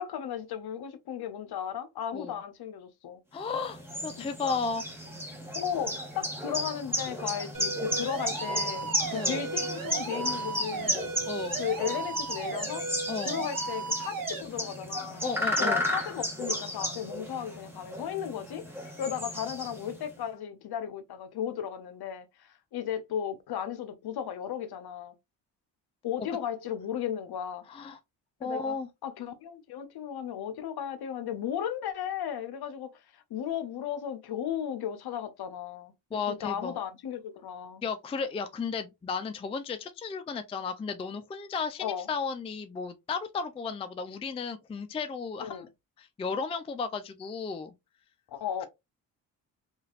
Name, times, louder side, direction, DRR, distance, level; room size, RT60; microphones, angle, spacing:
voice 1, 0.0-3.2 4.2-4.6 5.5-11.1 11.6-12.9 13.2-15.2 15.6-25.1 26.0-27.6 28.4-28.7 29.0-37.8 41.8-42.1 45.4-45.7 48.3-48.7, left 9 dB, 60° left, 0.7 m, -35 dB
voice 2, 3.3-4.8 9.1-9.4 11.3-11.6 13.1-13.4 15.2-15.9 27.7-28.0 28.4-28.9 36.1-36.8 37.8-45.7 46.0-47.7, left 5 dB, 15° left, 0.3 m, -34 dB
sound 1, 3.5-20.1, equal, 5° right, 1.2 m, -34 dB
sound 2, 7.5-14.4, right 3 dB, 50° right, 1.1 m, -36 dB
3.1 x 2.5 x 2.4 m
cardioid pair, 70°, 43 cm